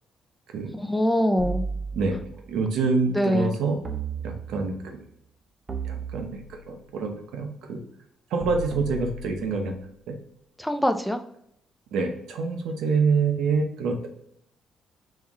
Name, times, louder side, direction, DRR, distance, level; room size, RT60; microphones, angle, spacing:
voice 1, 0.7-1.6 3.1-3.6 10.6-11.2, equal, 5° left, 7 dB, 0.6 m, -23 dB
sound 1, 1.4-2.5 3.8-4.8 5.7-6.8 8.4-9.8, right 4 dB, 35° right, 0.9 m, -34 dB
voice 2, 2.5-3.8 4.2-5.0 5.8-7.8 8.3-9.7 10.1-10.2 11.9-14.1, right 4 dB, 80° right, 4 dB, 0.9 m, -26 dB
4.5 x 3.5 x 3.0 m, 0.73 s
cardioid pair, 90°, 0 cm